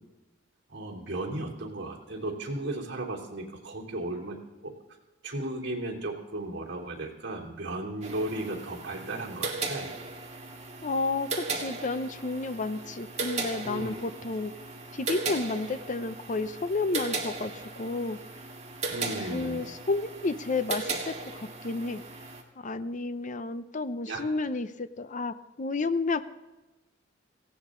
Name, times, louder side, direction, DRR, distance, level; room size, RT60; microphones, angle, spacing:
voice 1, 0.7-4.4 4.6-4.7 5.2-10.0 13.6-14.0 18.9-19.6 24.1-24.2, right 2 dB, 60° right, -2 dB, 3.1 m, -35 dB
sound 1, 8.0-22.4, right 3 dB, 35° right, 1.9 m, -37 dB
voice 2, 10.8-14.5 14.9-18.2 19.2-22.0 22.6-26.2, left 3 dB, 40° left, 12 dB, 0.6 m, -31 dB
18.0 x 16.0 x 3.8 m, 1.1 s
head